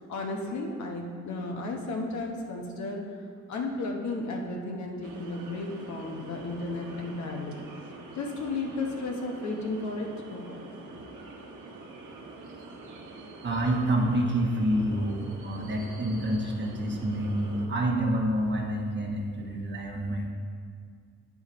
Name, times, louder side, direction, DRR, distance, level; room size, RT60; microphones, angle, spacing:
voice 1, 0.1-3.0 3.5-7.6 8.1-10.6, left 2 dB, 70° left, 1 dB, 1.1 m, -34 dB
sound 1, 5.0-17.7, right 3 dB, 75° right, 1.1 m, -45 dB
voice 2, 13.4-20.3, right 1 dB, 35° right, 1 dB, 1.1 m, -28 dB
8.7 x 4.8 x 4.2 m, 2.1 s
cardioid pair, 90°, 30 cm